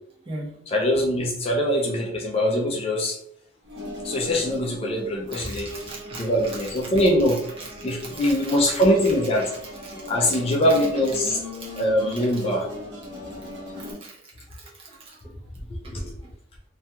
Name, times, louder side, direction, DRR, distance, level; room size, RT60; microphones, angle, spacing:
voice 1, 0.7-3.2 4.0-5.9 6.2-7.4 7.8-9.5 10.1-11.4 11.8-12.7 15.9-16.0, equal, 30° left, -1 dB, 0.3 m, -22 dB
sound 1, 3.6-13.9, left 1 dB, 65° right, 0.9 m, -38 dB
voice 2, 5.3-6.9 7.6-8.6 9.8-10.4 11.6-11.7 13.8-14.2 14.5-15.4 16.0-16.1, right 2 dB, 30° right, -5 dB, 0.6 m, -40 dB
2.3 x 2.2 x 2.7 m, 0.69 s
head